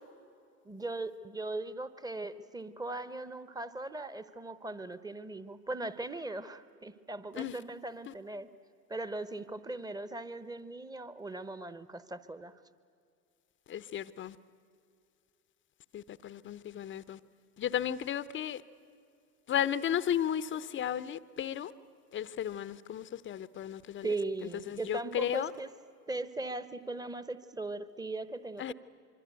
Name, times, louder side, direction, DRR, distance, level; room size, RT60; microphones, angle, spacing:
voice 1, 0.6-8.5 8.9-12.5 24.0-25.7 26.1-28.7, right 2 dB, 10° right, 0.9 m, -39 dB
voice 2, 13.7-14.4 15.9-17.2 17.6-18.6 19.5-21.7 22.1-24.1 24.4-25.5 28.6-28.7, left 10 dB, 25° left, 0.8 m, -34 dB
24.5 x 24.5 x 8.1 m
figure-of-eight pair, 80°, 49 cm